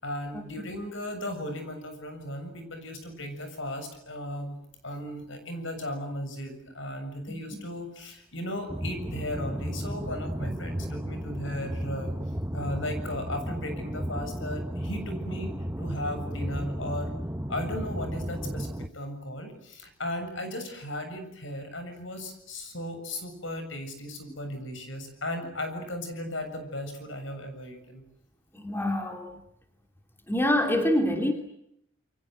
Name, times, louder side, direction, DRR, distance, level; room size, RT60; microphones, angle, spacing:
voice 1, 0.0-4.6 4.8-12.1 12.5-17.1 17.5-28.0, left 1 dB, 70° left, 7 dB, 7.1 m, -36 dB
sound 1, 8.7-18.9, equal, 10° right, 1.1 m, -34 dB
voice 2, 28.5-29.4 30.3-31.3, left 1 dB, 10° left, 4 dB, 2.8 m, -26 dB
29.0 x 24.0 x 7.8 m, 0.74 s
head